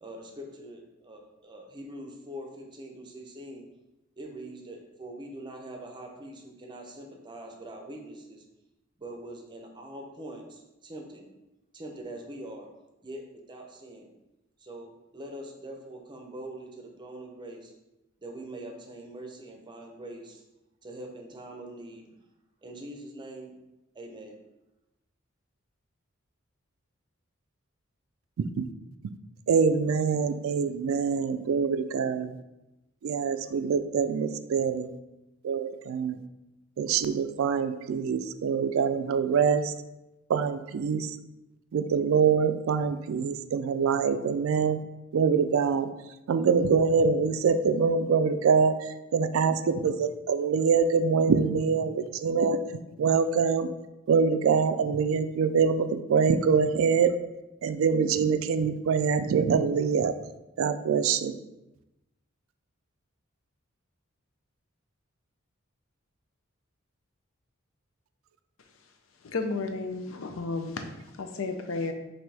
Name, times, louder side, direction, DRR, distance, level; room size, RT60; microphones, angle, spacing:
voice 1, 0.0-3.7 4.2-8.4 9.0-11.3 11.7-12.7 13.0-14.1 14.6-17.7 18.2-20.4 20.8-22.0 22.6-23.6 23.9-24.3, right 1 dB, 25° right, 2 dB, 0.6 m, -43 dB
voice 2, 29.5-32.4 33.0-34.9 35.4-36.2 36.8-39.7 40.3-41.2 41.7-44.8 45.1-45.9 46.3-52.6 53.0-53.7 54.1-57.1 57.6-60.1 60.6-61.3, right 5 dB, 75° right, 11 dB, 0.3 m, -25 dB
voice 3, 69.2-70.9 71.2-71.9, left 3 dB, 75° left, 6 dB, 0.5 m, -32 dB
5.9 x 2.7 x 3.3 m, 0.97 s
head